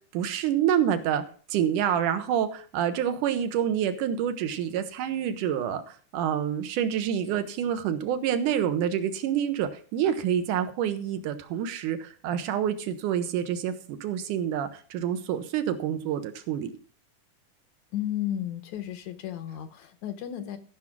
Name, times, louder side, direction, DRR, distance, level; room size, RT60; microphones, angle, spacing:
voice 1, 0.1-1.2 1.5-16.7, right 9 dB, 80° right, 9 dB, 2.5 m, -27 dB
voice 2, 17.9-20.6, left 11 dB, 70° left, 9 dB, 2.1 m, -33 dB
14.0 x 6.0 x 6.0 m, 0.42 s
omnidirectional pair, 3.7 m